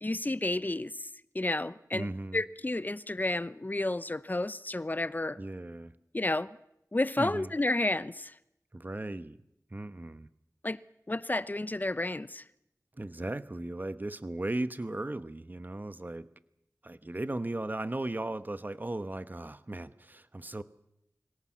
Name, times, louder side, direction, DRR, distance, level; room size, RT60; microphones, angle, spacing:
voice 1, 0.0-1.1 1.3-5.4 6.1-6.6 6.9-8.4 10.6-10.8 11.1-12.4, left 2 dB, 30° left, 0.7 m, -31 dB
voice 2, 1.9-2.4 5.4-5.9 7.2-7.5 8.7-9.4 9.7-10.3 13.0-16.3 16.8-20.6, right 2 dB, 30° right, 1.1 m, -36 dB
24.0 x 17.5 x 7.4 m
wide cardioid pair, 55°, 6 cm